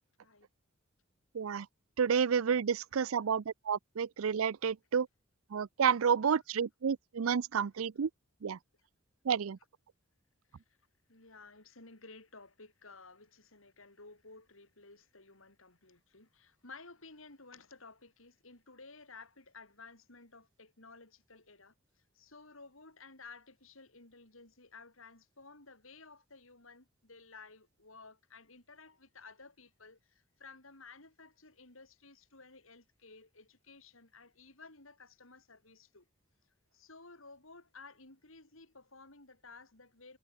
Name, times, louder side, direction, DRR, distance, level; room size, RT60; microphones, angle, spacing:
voice 1, 1.3-1.7 2.0-5.1 5.5-8.1 8.4-8.6 9.2-9.6, right 7 dB, 80° right, 0.5 m, -30 dB
voice 2, 11.1-21.7 22.1-36.0 36.7-40.2, left 4 dB, 75° left, 5.5 m, -55 dB
head